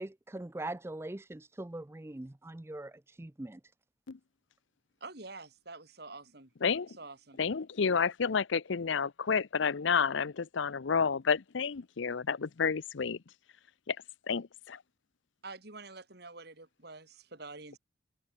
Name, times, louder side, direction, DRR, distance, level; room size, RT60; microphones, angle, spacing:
voice 1, 0.0-3.6, right 1 dB, 15° right, 0.4 m, -42 dB
voice 2, 5.0-6.5 7.0-7.4 15.4-17.8, right 3 dB, 55° right, 2.6 m, -47 dB
voice 3, 7.4-13.2 13.9-14.0 14.3-14.8, left 6 dB, 70° left, 0.6 m, -30 dB
head